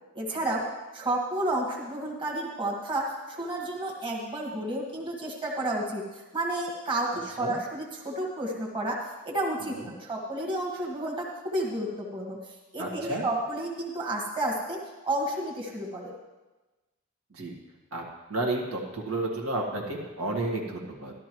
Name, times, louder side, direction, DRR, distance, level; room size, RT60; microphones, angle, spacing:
voice 1, 0.1-0.7 0.9-9.0 9.2-12.4 12.7-16.1, right 1 dB, 25° right, -2 dB, 1.5 m, -31 dB
voice 2, 9.6-9.9 12.8-13.2 17.3-17.5 17.9-18.0 18.3-21.1, right 2 dB, 80° right, 0 dB, 1.7 m, -31 dB
12.5 x 12.5 x 3.1 m, 1.1 s
head